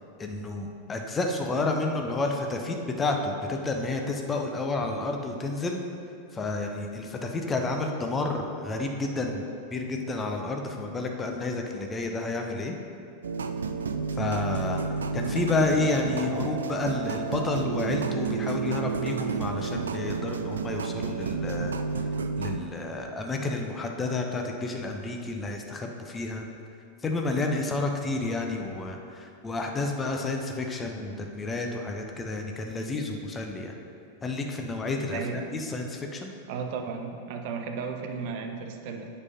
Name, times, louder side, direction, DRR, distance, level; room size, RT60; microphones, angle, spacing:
voice 1, 0.2-5.8 6.3-12.8 14.2-14.8 15.1-21.7 22.4-26.5 27.0-33.7 34.2-35.2 35.5-36.3, left 3 dB, 15° left, 2 dB, 0.8 m, -30 dB
sound 1, 13.2-22.6, right 5 dB, 70° right, 0.4 m, -31 dB
voice 2, 35.1-35.4 36.5-39.1, right 5 dB, 50° right, 5 dB, 0.8 m, -34 dB
8.1 x 5.5 x 5.6 m, 2.5 s
figure-of-eight pair, 90°, 0 cm